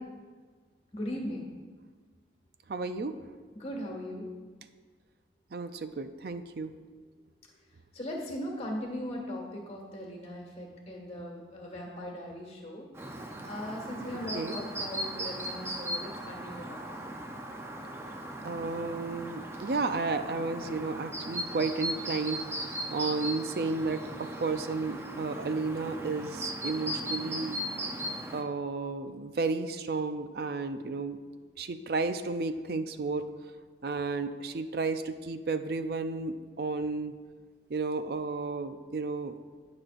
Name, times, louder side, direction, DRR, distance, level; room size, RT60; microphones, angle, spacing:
voice 1, 0.9-1.5 3.5-4.3 7.9-12.9 13.5-16.8, left 1 dB, 35° left, 0 dB, 1.7 m, -39 dB
voice 2, 2.7-3.2 5.5-6.7 14.3-14.6 18.4-27.7 28.3-31.2 31.6-33.2 33.8-37.1 37.7-39.3, right 3 dB, 60° right, 9 dB, 0.4 m, -32 dB
Chirp tweet, 12.9-28.4, right 1 dB, 15° right, 0.6 m, -38 dB
18.5 x 6.3 x 2.5 m, 1.5 s
head